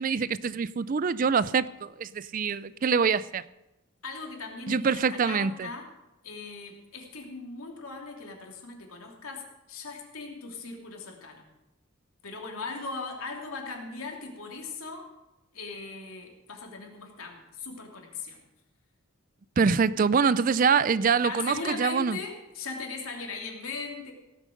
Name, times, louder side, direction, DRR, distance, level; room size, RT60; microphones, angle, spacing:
voice 1, 0.0-3.4 4.7-5.7 19.6-22.2, right 5 dB, 40° right, 0.4 m, -25 dB
voice 2, 4.0-5.9 6.2-11.4 12.2-15.1 15.5-18.4 21.2-24.1, left 4 dB, 85° left, 2.9 m, -39 dB
17.5 x 7.6 x 6.4 m
head